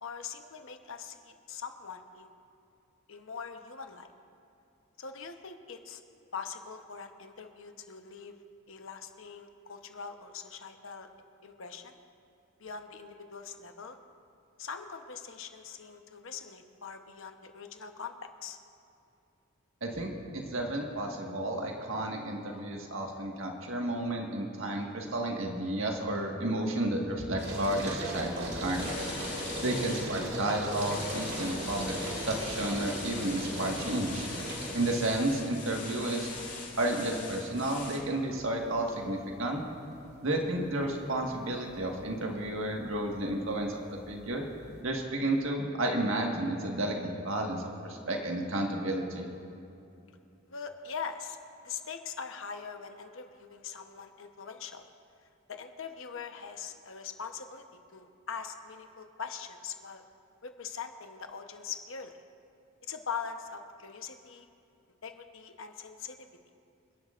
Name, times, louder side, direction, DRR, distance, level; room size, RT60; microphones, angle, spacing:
voice 1, 0.0-2.4 3.1-4.1 5.0-6.0 6.3-8.4 8.7-11.1 11.4-12.0 12.6-14.0 14.6-18.6 50.5-51.4 51.6-54.8 55.5-57.6 57.9-60.0 60.4-62.1 62.9-64.5 65.0-66.3, left 6 dB, 70° left, 6 dB, 1.0 m, -42 dB
voice 2, 19.8-28.9 29.6-34.3 34.7-36.3 36.8-39.6 40.2-43.8 44.1-44.4 44.8-49.3, right 1 dB, 70° right, 1 dB, 1.7 m, -32 dB
sound 1, 27.4-44.8, right 1 dB, 50° right, 2.3 m, -40 dB
sound 2, 28.7-30.1 30.7-38.0, left 4 dB, 35° left, 2.4 m, -42 dB
28.0 x 11.0 x 2.5 m, 2.7 s
head